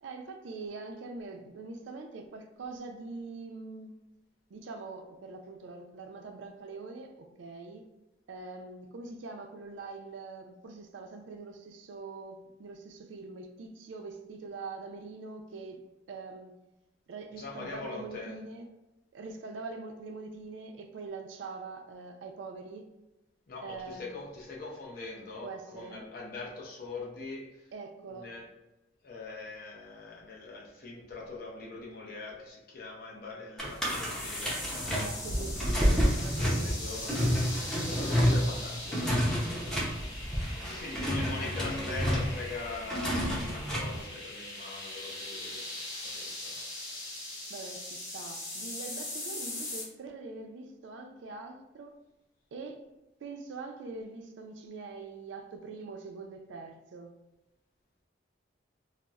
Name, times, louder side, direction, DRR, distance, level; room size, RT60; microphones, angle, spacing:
voice 1, 0.0-3.9 4.5-7.9 8.3-16.6 17.1-18.7 19.1-22.9 23.6-24.1 25.4-26.0 27.7-28.3 34.9-36.8 40.6-40.9 47.5-51.9 52.5-52.8 53.2-57.1, right 3 dB, 75° right, 4 dB, 0.4 m, -43 dB
voice 2, 17.3-18.3 23.5-27.5 28.1-28.5 29.0-34.6 36.4-40.0 40.6-47.0, left 3 dB, 50° left, -3 dB, 0.6 m, -42 dB
sound 1, 33.6-44.0, equal, 5° left, 0.5 m, -29 dB
sound 2, 33.8-49.8, left 2 dB, 70° left, 1.2 m, -41 dB
4.0 x 2.0 x 2.3 m, 0.98 s
head